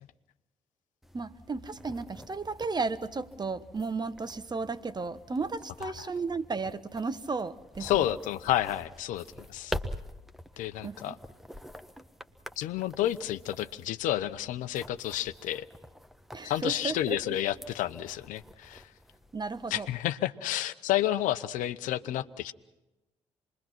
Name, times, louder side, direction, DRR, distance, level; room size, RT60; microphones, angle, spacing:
sound 1, 1.0-20.1, equal, ahead, 1.4 m, -46 dB
voice 1, 1.1-8.1 10.8-11.2 16.3-17.4 19.3-19.9, right 4 dB, 30° right, 13 dB, 1.3 m, -34 dB
voice 2, 7.8-9.2 9.5-9.7 10.6-11.2 12.6-15.6 16.4-18.8 19.7-22.5, left 13 dB, 65° left, 13 dB, 0.8 m, -30 dB
27.5 x 22.0 x 5.9 m, 1.0 s
figure-of-eight pair, 40°, 15 cm